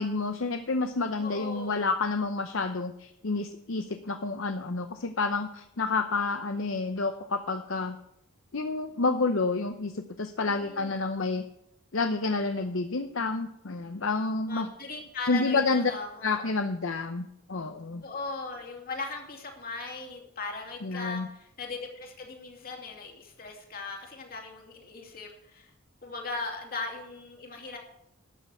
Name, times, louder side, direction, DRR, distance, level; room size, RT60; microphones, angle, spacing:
voice 1, 0.0-8.0 8.5-11.4 11.9-14.7 15.3-15.9 16.2-18.0 20.8-21.3, left 3 dB, 60° left, 7 dB, 0.7 m, -29 dB
voice 2, 1.2-1.8 10.5-11.0 14.5-16.4 18.0-25.7 26.0-27.8, left 3 dB, 45° left, 2 dB, 2.6 m, -38 dB
12.5 x 6.6 x 9.0 m, 0.80 s
head